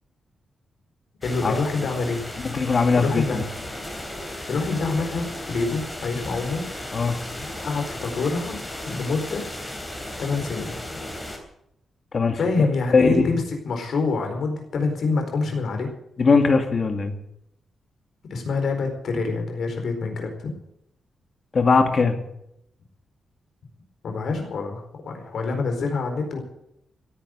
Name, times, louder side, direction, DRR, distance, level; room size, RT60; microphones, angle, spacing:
voice 1, 1.2-2.2 2.9-3.4 4.5-6.6 7.4-8.6 8.9-9.5 10.2-10.8 12.3-15.9 18.3-20.5 24.0-26.4, left 4 dB, 60° left, 4 dB, 4.5 m, -26 dB
sound 1, 1.2-11.4, left 1 dB, 10° left, 3.3 m, -35 dB
voice 2, 2.5-3.4 6.9-7.2 12.1-12.7 12.9-13.2 16.2-17.1 21.5-22.2, left 4 dB, 35° left, 6 dB, 2.1 m, -20 dB
16.0 x 10.0 x 8.1 m, 0.77 s
wide cardioid pair, 165°, 0 cm